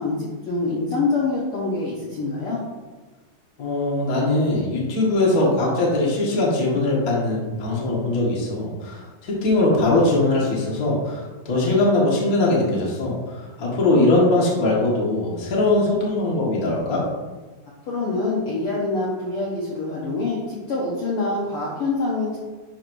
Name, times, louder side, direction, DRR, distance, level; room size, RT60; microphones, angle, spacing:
voice 1, 0.0-2.6 17.9-22.4, left 3 dB, 60° left, -4 dB, 1.5 m, -25 dB
voice 2, 3.6-17.0, left 2 dB, 40° left, -4 dB, 1.3 m, -21 dB
10.5 x 4.6 x 2.6 m, 1.3 s
omnidirectional pair, 3.6 m